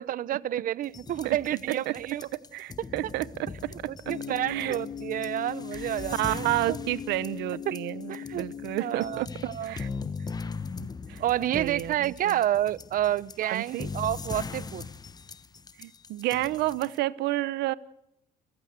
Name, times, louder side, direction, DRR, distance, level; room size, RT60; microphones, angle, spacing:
voice 1, 0.0-2.3 3.9-6.8 7.7-7.8 8.1-8.5 8.8-9.7 11.2-14.9, right 12 dB, 55° right, 20 dB, 0.8 m, -29 dB
sound 1, 0.8-17.0, left 5 dB, 25° left, 1.1 m, -40 dB
voice 2, 2.5-4.1 4.5-4.8 5.7-5.8 6.1-9.3 9.6-9.9 10.8-11.2 11.5-12.4 13.4-13.9 15.8-17.7, right 16 dB, 85° right, 17 dB, 0.9 m, -30 dB
sound 2, 4.0-9.2, left 8 dB, 55° left, 1.1 m, -39 dB
29.0 x 15.5 x 7.9 m, 0.79 s
cardioid pair, 110°, 17 cm